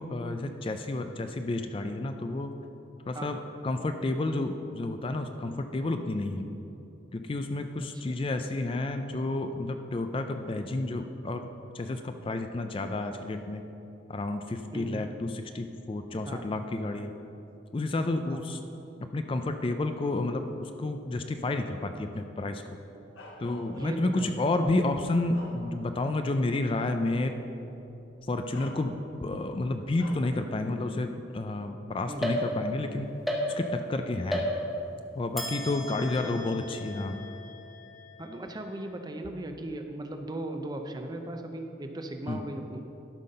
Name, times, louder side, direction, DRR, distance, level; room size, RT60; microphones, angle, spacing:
voice 1, 0.0-2.5 3.1-6.5 7.1-11.5 11.7-13.7 14.1-17.1 17.7-18.6 19.1-22.6 23.4-27.3 28.3-33.1 33.5-34.5 35.1-37.2 42.3-42.4, left 2 dB, 30° left, 7 dB, 0.4 m, -30 dB
voice 2, 14.7-15.1 16.3-16.5 18.3-18.6 23.7-24.3 32.1-32.4 36.2-36.4 38.2-42.9, right 1 dB, 20° right, 5 dB, 0.6 m, -38 dB
Bark, 23.1-24.2 24.8-26.1 26.5-26.7 27.8-27.9 28.5-29.3 30.0-30.4, left 1 dB, 85° left, 1.5 m, -47 dB
sound 1, 32.2-32.9 33.3-33.9 34.3-35.0 35.4-38.8, equal, ahead, 1.0 m, -34 dB
12.5 x 5.7 x 5.4 m, 2.9 s
head